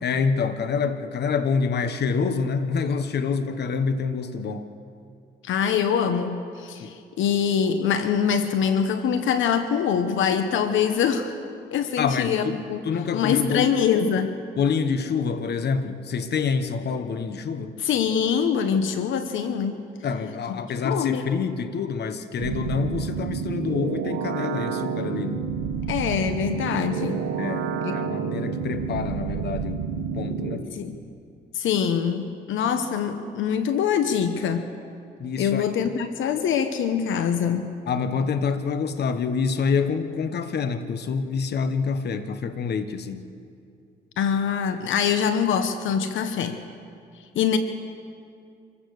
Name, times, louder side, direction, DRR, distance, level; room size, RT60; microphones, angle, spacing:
voice 1, 0.0-4.7 6.8-7.0 12.0-13.8 14.6-17.8 20.0-25.5 27.4-30.7 35.2-35.6 37.9-43.3, left 5 dB, 55° left, 10 dB, 1.2 m, -27 dB
voice 2, 5.4-11.4 11.7-12.8 13.1-14.3 17.8-19.8 20.5-20.6 20.8-21.2 25.9-27.3 27.8-27.9 30.3-31.0 31.5-34.7 35.4-37.7 44.2-46.6 47.3-47.6, left 7 dB, 75° left, 9 dB, 1.1 m, -24 dB
sound 1, 22.4-30.6, right 6 dB, 85° right, 1.3 m, -29 dB
26.0 x 15.5 x 6.6 m, 2.4 s
cardioid pair, 90°, 20 cm